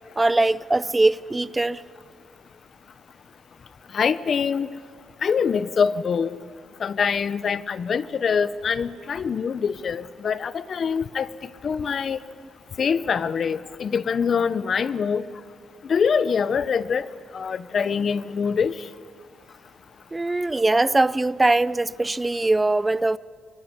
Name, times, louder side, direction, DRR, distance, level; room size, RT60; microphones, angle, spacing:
voice 1, 0.2-1.8 20.1-23.2, right 2 dB, 15° right, 0.6 m, -21 dB
voice 2, 3.9-4.7 5.2-6.4 6.8-11.3 11.6-12.2 12.8-15.2 15.8-17.1 17.3-18.7, left 6 dB, 50° left, 1.0 m, -24 dB
27.5 x 22.0 x 9.9 m
cardioid pair, 90°, 0 cm